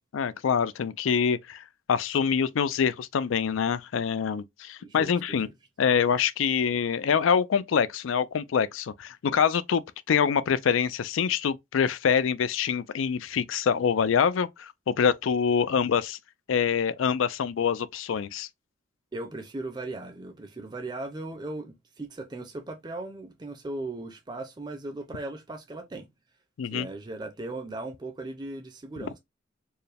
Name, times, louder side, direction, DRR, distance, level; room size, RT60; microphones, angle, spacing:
voice 1, 0.1-5.5 5.8-16.2 16.5-18.5 26.6-26.9 29.0-29.1, left 7 dB, 85° left, 0.4 m, -25 dB
voice 2, 4.8-5.4 19.1-26.1 26.7-29.2, right 2 dB, 20° right, 0.5 m, -37 dB
4.5 x 2.1 x 3.3 m
head